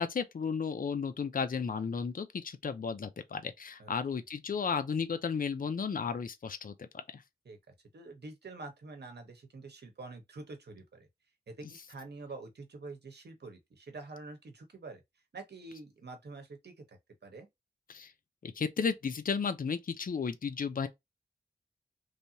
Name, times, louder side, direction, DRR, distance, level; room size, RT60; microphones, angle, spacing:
voice 1, 0.0-7.2 17.9-18.1 18.4-20.9, left 6 dB, 55° left, 0.5 m, -34 dB
voice 2, 7.9-11.1 11.5-15.0 15.3-17.5, right 3 dB, 85° right, 1.0 m, -47 dB
3.3 x 2.7 x 2.7 m
wide cardioid pair, 60°, 17 cm